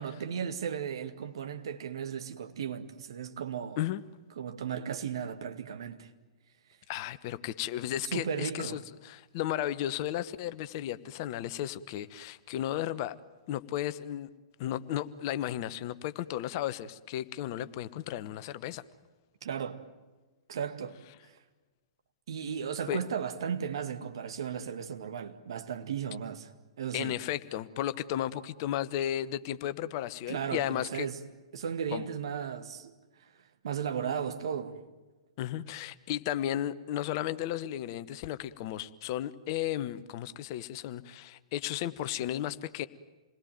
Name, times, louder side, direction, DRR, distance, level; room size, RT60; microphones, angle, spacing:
voice 1, 0.0-3.8 4.4-6.1 8.1-8.8 19.4-19.8 20.5-21.0 21.2-21.3 22.3-26.5 26.8-27.2 30.3-31.2 31.5-32.9 33.6-34.8, right 7 dB, 60° right, 2.1 m, -35 dB
voice 2, 6.9-13.1 13.5-14.3 14.6-18.8 22.9-23.0 26.9-31.1 31.9-32.0 35.4-42.9, left 12 dB, 45° left, 1.1 m, -34 dB
28.0 x 21.0 x 9.2 m
figure-of-eight pair, 110°, 3 cm